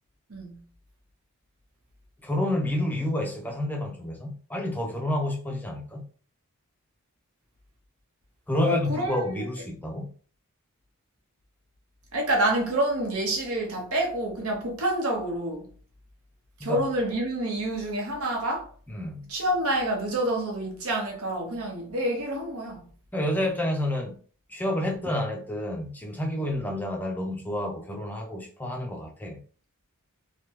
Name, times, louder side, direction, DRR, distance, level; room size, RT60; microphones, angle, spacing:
voice 1, 0.3-0.6 8.5-9.5 12.1-15.7 16.6-18.7 19.3-22.9 24.8-24.9 26.4-26.5, right 1 dB, 75° right, 0.9 m, -28 dB
voice 2, 2.2-6.1 8.5-10.1 16.6-16.8 18.9-19.3 23.1-24.2 24.5-29.4, left 1 dB, 10° left, 0.4 m, -29 dB
3.3 x 2.2 x 2.8 m
head